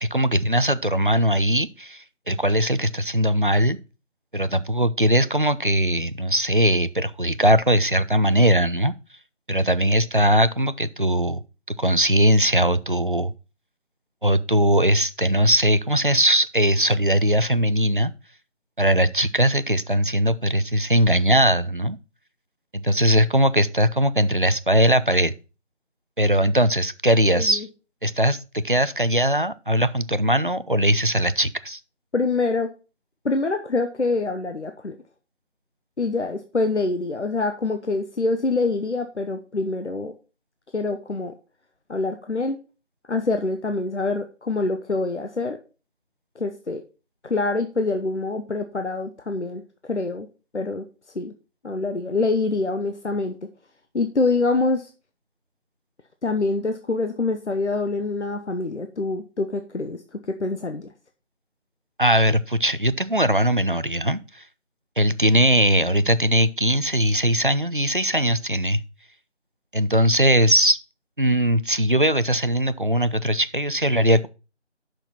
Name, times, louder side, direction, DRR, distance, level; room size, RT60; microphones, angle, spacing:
voice 1, 0.0-3.8 4.3-8.9 9.5-11.4 11.7-13.3 14.2-18.1 18.8-22.0 22.7-25.3 26.2-27.7 28.0-31.8 62.0-64.4 65.0-68.8 69.7-70.8 71.2-74.3, equal, 45° right, 14 dB, 0.4 m, -20 dB
voice 2, 27.3-27.7 32.1-32.7 33.2-35.0 36.0-40.1 40.7-41.3 41.9-42.6 43.1-45.6 46.4-46.8 47.2-50.3 50.5-50.8 51.1-51.3 51.6-53.4 53.9-54.9 56.2-60.0 60.3-60.9, left 3 dB, 70° left, 7 dB, 1.0 m, -25 dB
6.8 x 5.9 x 5.7 m, 0.33 s
figure-of-eight pair, 175°, 36 cm